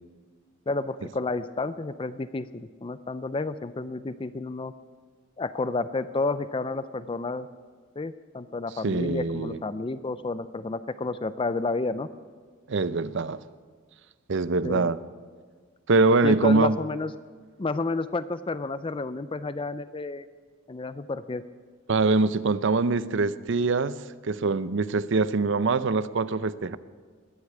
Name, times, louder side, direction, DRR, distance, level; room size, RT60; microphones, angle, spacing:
voice 1, 0.7-4.7 5.4-7.5 8.0-12.1 14.6-14.9 16.2-17.1 17.6-20.3 20.7-21.4, left 3 dB, 25° left, 14 dB, 0.4 m, -30 dB
voice 2, 8.8-9.6 12.7-13.4 14.3-15.0 15.9-16.8 21.9-24.0 24.2-26.8, right 3 dB, 60° right, 15 dB, 0.6 m, -23 dB
20.5 x 8.2 x 8.4 m, 1.5 s
head